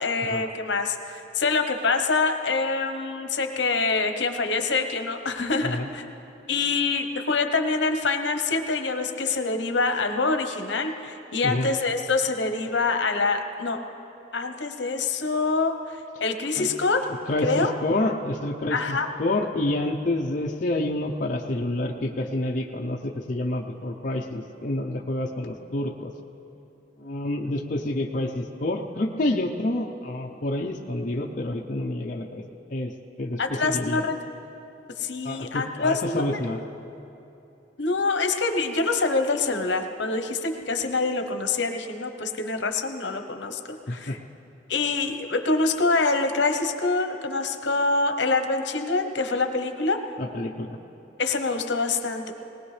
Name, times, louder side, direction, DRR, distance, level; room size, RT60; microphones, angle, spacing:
voice 1, 0.0-6.0 6.5-13.8 14.3-17.1 17.4-17.7 18.7-19.1 33.4-34.2 35.0-36.3 37.8-43.6 43.9-44.2 44.7-50.0 51.2-52.3, left 3 dB, 75° left, 6 dB, 0.9 m, -25 dB
voice 2, 17.3-26.1 27.0-32.4 32.7-32.9 33.2-34.1 35.2-36.6 43.9-44.2 50.2-50.8, left 1 dB, 45° left, 0 dB, 0.6 m, -28 dB
20.0 x 19.0 x 3.3 m, 2.9 s
head